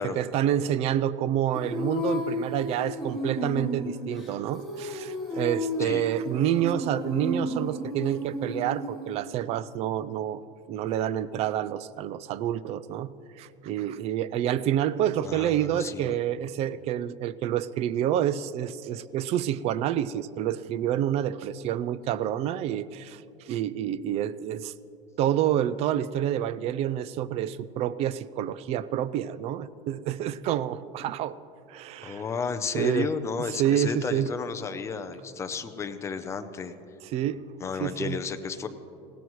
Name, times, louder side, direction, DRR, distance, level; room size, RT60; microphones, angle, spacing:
voice 1, 0.0-10.4 10.7-24.7 25.2-31.4 31.7-32.2 32.7-33.1 33.6-34.3 37.1-37.4 37.8-38.2, right 11 dB, 40° right, 17 dB, 0.4 m, -28 dB
Female singing, 1.5-9.2, left 1 dB, ahead, 3.5 m, -32 dB
voice 2, 15.2-16.2 32.0-36.7 37.6-38.7, left 5 dB, 15° left, 8 dB, 0.6 m, -33 dB
20.0 x 16.5 x 3.1 m, 2.7 s
cardioid pair, 160°, 16 cm